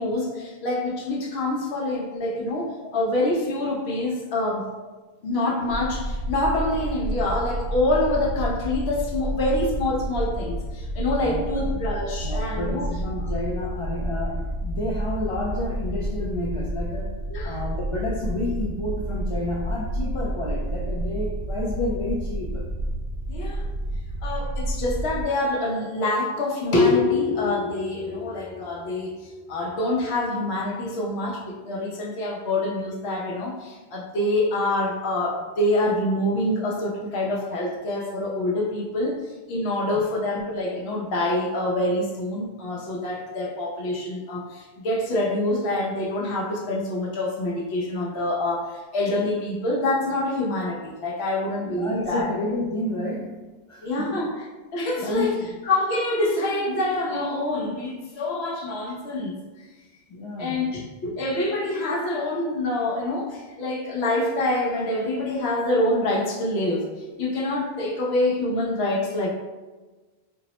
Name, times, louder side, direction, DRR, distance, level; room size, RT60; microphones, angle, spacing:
voice 1, 0.0-4.7 5.2-12.9 17.3-17.6 23.3-23.7 24.2-39.2 39.5-52.3 53.8-54.3 54.7-59.4 60.4-66.8 67.2-69.3, left 2 dB, 90° left, -3 dB, 1.0 m, -26 dB
sound 1, 5.7-25.2, right 1 dB, 85° right, 0.9 m, -30 dB
voice 2, 11.2-11.6 12.2-17.2 17.4-22.7 39.9-40.0 51.6-54.3 55.0-55.5 60.1-60.6, left 2 dB, 60° left, -4 dB, 0.3 m, -30 dB
4.4 x 2.0 x 2.8 m, 1.2 s
omnidirectional pair, 1.1 m